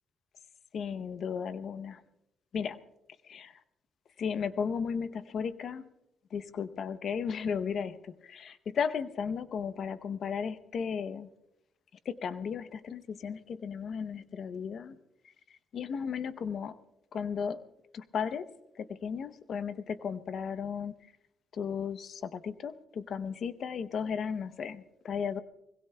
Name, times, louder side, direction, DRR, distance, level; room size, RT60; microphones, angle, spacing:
voice 1, 0.7-2.0 2.5-2.8 3.2-3.6 4.2-5.9 6.3-7.9 8.7-11.3 12.0-15.0 15.7-16.8 17.1-17.6 17.9-18.5 18.8-20.9 21.5-25.4, left 6 dB, 60° left, 13 dB, 0.7 m, -35 dB
25.0 x 21.5 x 2.2 m, 0.85 s
cardioid pair, 90°, 0 cm